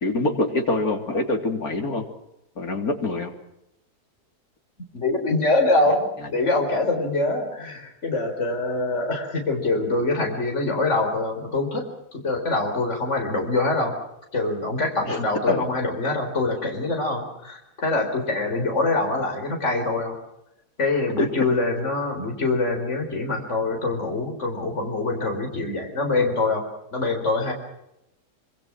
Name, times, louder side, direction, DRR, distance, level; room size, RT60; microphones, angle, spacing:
voice 1, 0.0-2.1 2.6-3.3 15.0-15.2 15.5-15.7 21.2-21.3, left 2 dB, 65° left, 3 dB, 3.9 m, -24 dB
voice 2, 4.9-13.9 14.3-20.1 20.8-26.7 26.9-27.5, left 2 dB, 45° left, 2 dB, 4.7 m, -24 dB
26.0 x 25.5 x 6.0 m, 0.84 s
omnidirectional pair, 1.7 m